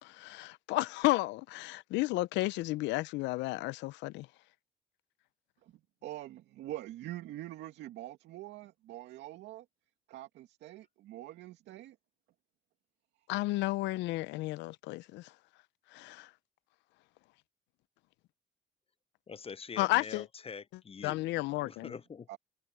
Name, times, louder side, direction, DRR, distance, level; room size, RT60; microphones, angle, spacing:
voice 1, 0.0-4.3 13.3-15.3 15.9-16.3 19.8-20.3 21.0-21.9, left 19 dB, 75° left, 0.7 m, -32 dB
voice 2, 5.6-9.7 10.1-12.0 22.3-22.4, right 15 dB, 75° right, 2.4 m, -45 dB
voice 3, 19.3-21.3 21.6-22.3, left 6 dB, 30° left, 0.7 m, -45 dB
hypercardioid pair, 60°, 19 cm